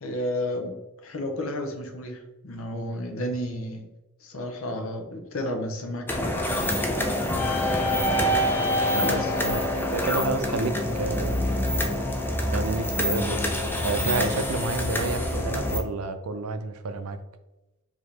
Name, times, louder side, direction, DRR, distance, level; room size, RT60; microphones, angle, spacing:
voice 1, 0.0-3.9 4.2-6.4 9.0-9.4, left 1 dB, 65° left, 4 dB, 0.8 m, -32 dB
sound 1, 6.1-15.8, left 1 dB, 10° left, 0.5 m, -26 dB
voice 2, 9.4-11.4 12.5-13.6 13.8-17.2, right 3 dB, 85° right, 9 dB, 0.5 m, -30 dB
4.8 x 2.9 x 3.3 m, 1.0 s
head